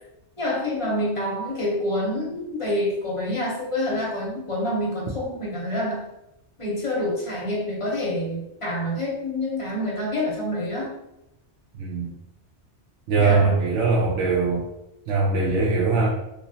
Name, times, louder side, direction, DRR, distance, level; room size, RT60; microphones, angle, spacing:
voice 1, 0.4-6.0 6.6-10.9 13.2-13.5, left 1 dB, 35° left, -4 dB, 0.7 m, -27 dB
voice 2, 11.8-12.1 13.1-14.7 15.1-16.1, right 4 dB, 80° right, -6 dB, 1.0 m, -21 dB
3.0 x 2.6 x 2.7 m, 0.88 s
omnidirectional pair, 1.2 m